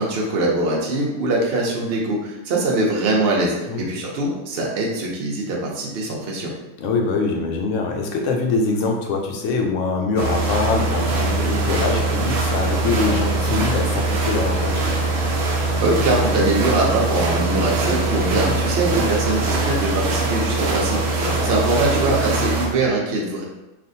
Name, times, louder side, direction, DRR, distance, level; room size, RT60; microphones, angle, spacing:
voice 1, 0.0-6.5 15.7-21.0 21.4-23.4, right 2 dB, 60° right, -3 dB, 0.8 m, -22 dB
voice 2, 6.8-14.9 21.2-21.5, left 3 dB, 80° left, 2 dB, 0.9 m, -23 dB
sound 1, 10.2-22.7, right 2 dB, 85° right, 1.0 m, -22 dB
3.3 x 2.4 x 2.6 m, 0.97 s
omnidirectional pair, 1.3 m